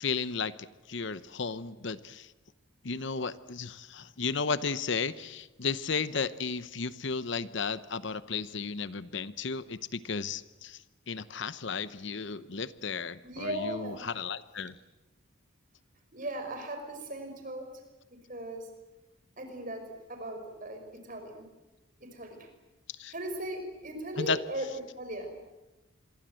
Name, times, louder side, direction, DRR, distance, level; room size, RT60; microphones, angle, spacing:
voice 1, 0.0-2.3 2.8-14.7 22.9-23.1 24.2-24.4, left 5 dB, 55° left, 14 dB, 0.8 m, -34 dB
voice 2, 13.2-14.0 16.1-17.8 18.1-18.7 19.4-21.5 22.0-22.5 23.1-24.7 25.0-25.3, right 1 dB, 40° right, 6 dB, 5.3 m, -38 dB
27.0 x 23.0 x 7.8 m, 1.0 s
head